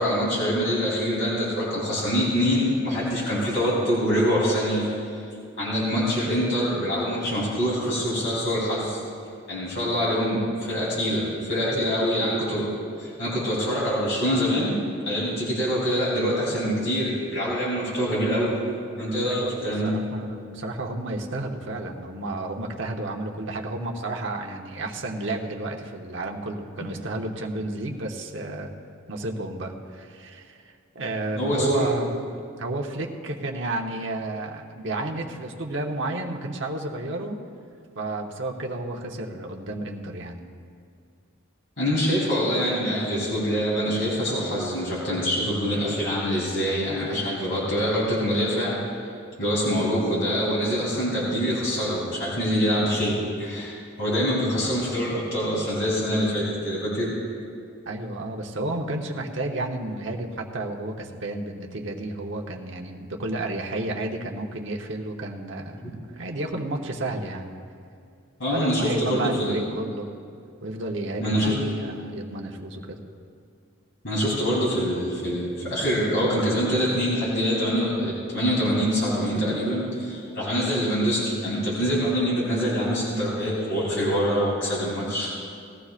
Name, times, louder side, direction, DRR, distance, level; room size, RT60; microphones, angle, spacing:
voice 1, 0.0-5.2 5.6-9.0 9.5-12.7 13.0-14.8 15.1-18.5 19.0-19.9 26.8-26.9 31.4-31.9 41.8-49.1 49.4-57.1 65.8-65.9 68.4-69.6 71.2-71.7 74.0-85.3, equal, 65° left, -7 dB, 3.4 m, -25 dB
voice 2, 19.3-28.7 29.1-32.2 32.6-37.4 37.9-40.4 57.9-67.5 68.5-70.1 70.6-73.0, right 2 dB, 65° right, 2 dB, 1.0 m, -31 dB
19.5 x 14.5 x 2.5 m, 2.4 s
head